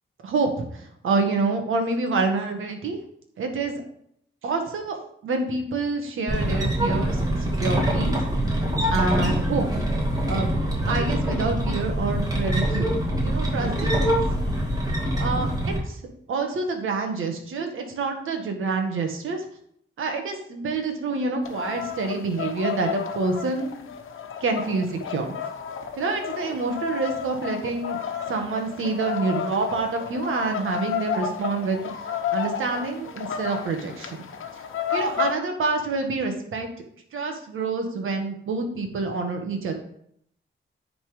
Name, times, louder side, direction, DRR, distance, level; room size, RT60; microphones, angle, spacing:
voice 1, 0.2-3.0 3.4-3.8 4.4-5.0 5.2-8.1 8.9-9.8 10.3-10.5 10.9-12.9 13.2-14.2 15.2-16.0 16.3-19.4 20.0-23.9 24.4-25.3 25.9-28.0 28.3-34.3 34.9-36.7 37.1-39.7, right 3 dB, 80° right, 4 dB, 1.5 m, -27 dB
sound 1, 6.3-15.8, right 1 dB, 20° right, 2.1 m, -24 dB
sound 2, 21.4-35.3, left 7 dB, 80° left, 1.0 m, -32 dB
9.8 x 4.1 x 5.0 m, 0.68 s
wide cardioid pair, 140°, 21 cm